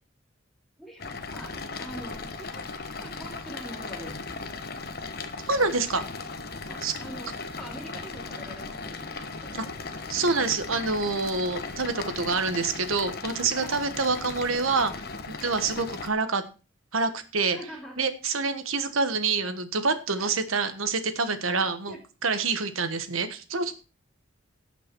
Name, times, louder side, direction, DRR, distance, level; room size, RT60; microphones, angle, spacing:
sound 1, 1.0-16.1, left 3 dB, 50° left, 1.2 m, -37 dB
voice 1, 1.3-2.7 3.0-4.3 6.6-9.7 13.6-13.8 15.5-15.7 17.5-18.1 20.2-20.3 21.9-22.0, equal, ahead, -2 dB, 2.7 m, -44 dB
voice 2, 5.5-6.0 6.8-6.9 9.5-9.6 10.1-14.9 15.4-16.4 16.9-17.6 18.0-21.9 22.2-23.7, right 4 dB, 85° right, 10 dB, 1.3 m, -26 dB
17.0 x 5.9 x 4.6 m, 0.34 s
head